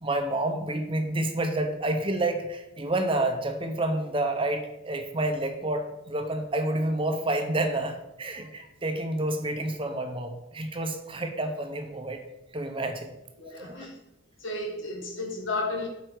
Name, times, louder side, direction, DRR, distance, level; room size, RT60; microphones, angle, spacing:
voice 1, 0.0-12.2 12.5-13.1 13.6-13.9, right 1 dB, 30° right, 6 dB, 0.8 m, -29 dB
voice 2, 13.4-14.0 14.4-15.9, left 2 dB, 85° left, -1 dB, 2.2 m, -33 dB
7.9 x 5.2 x 4.7 m, 0.92 s
head